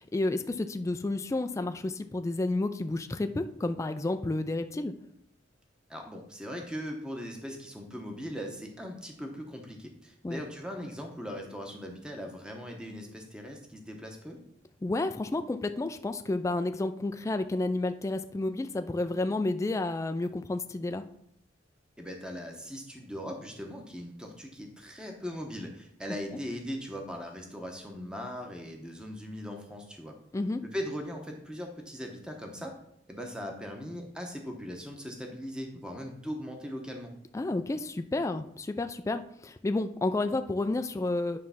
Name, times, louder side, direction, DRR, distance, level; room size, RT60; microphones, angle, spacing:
voice 1, 0.0-4.9 10.2-10.4 14.8-21.0 30.3-30.6 37.3-41.4, left 2 dB, 15° left, 9 dB, 0.3 m, -31 dB
voice 2, 5.9-14.4 22.0-30.2 30.7-32.8 33.1-37.1, equal, 5° right, 2 dB, 0.9 m, -39 dB
9.4 x 3.2 x 5.7 m, 0.70 s
head